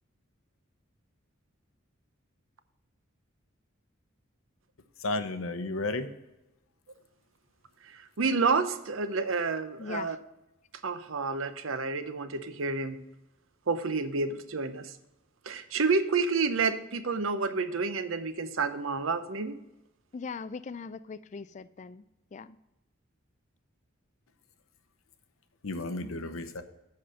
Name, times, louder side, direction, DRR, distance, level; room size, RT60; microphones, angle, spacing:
voice 1, 5.0-6.1 25.6-26.6, left 2 dB, 85° left, 9 dB, 0.8 m, -33 dB
voice 2, 7.9-10.2 10.8-13.0 13.7-14.9 15.5-19.6, right 4 dB, 75° right, 11 dB, 0.7 m, -29 dB
voice 3, 9.8-10.2 20.1-22.1 22.3-22.6, left 5 dB, 35° left, 16 dB, 0.3 m, -40 dB
7.7 x 5.7 x 6.4 m, 0.95 s
head